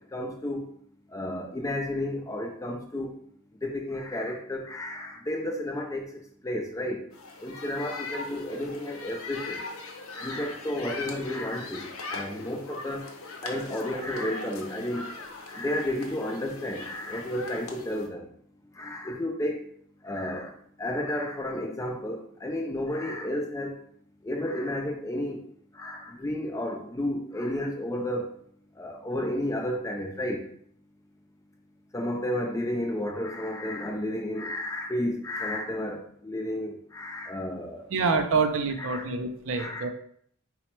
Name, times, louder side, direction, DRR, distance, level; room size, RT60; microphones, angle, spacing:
voice 1, 0.1-0.7 1.1-3.1 3.6-6.1 6.4-7.0 7.4-9.6 10.1-13.1 13.4-15.1 15.5-18.3 18.8-19.7 20.0-20.5 20.8-23.8 24.2-25.4 25.7-28.3 28.8-30.4 31.9-37.9 38.8-39.1 39.5-39.9, left 1 dB, 15° left, 2 dB, 0.4 m, -32 dB
sound 1, 7.1-18.1, left 3 dB, 75° left, 0.7 m, -40 dB
voice 2, 37.9-39.9, right 4 dB, 65° right, 7 dB, 0.4 m, -26 dB
4.1 x 2.1 x 4.3 m, 0.65 s
head